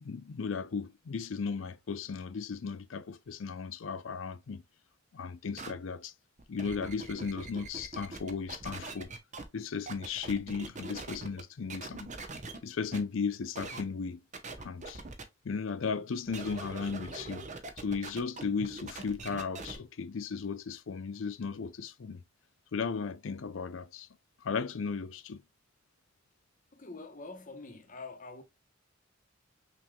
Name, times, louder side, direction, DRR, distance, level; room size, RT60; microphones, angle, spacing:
voice 1, 0.0-4.6 5.1-6.1 6.5-9.1 9.5-12.1 12.6-14.2 14.6-15.0 15.4-17.5 17.8-22.2 22.7-24.1 24.4-25.4, left 5 dB, 75° left, 0.5 m, -36 dB
sound 1, 5.6-5.7 6.4-9.4 9.9-11.4 11.7-12.6 12.9-13.0 13.5-13.8 14.3-15.2 16.3-19.8, right 3 dB, 40° right, 0.8 m, -42 dB
voice 2, 26.7-28.4, left 3 dB, 40° left, 0.9 m, -45 dB
5.7 x 3.0 x 2.2 m
head